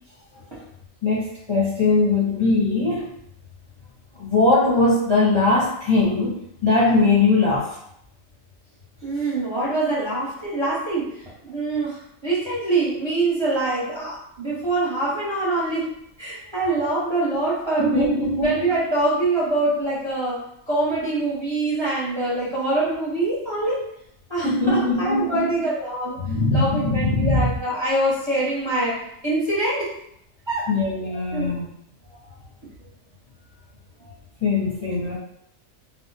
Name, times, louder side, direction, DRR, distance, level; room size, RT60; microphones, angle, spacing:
voice 1, 1.0-3.1 4.2-6.3 6.6-7.7 17.8-18.5 24.4-25.5 26.2-27.5 30.7-31.7 34.4-35.2, left 3 dB, 25° left, -7 dB, 0.8 m, -20 dB
voice 2, 9.0-18.1 18.4-23.8 24.3-26.2 26.5-30.0 30.5-30.7 31.1-31.5, right 2 dB, 25° right, -7 dB, 0.7 m, -24 dB
2.5 x 2.1 x 3.9 m, 0.73 s
omnidirectional pair, 1.4 m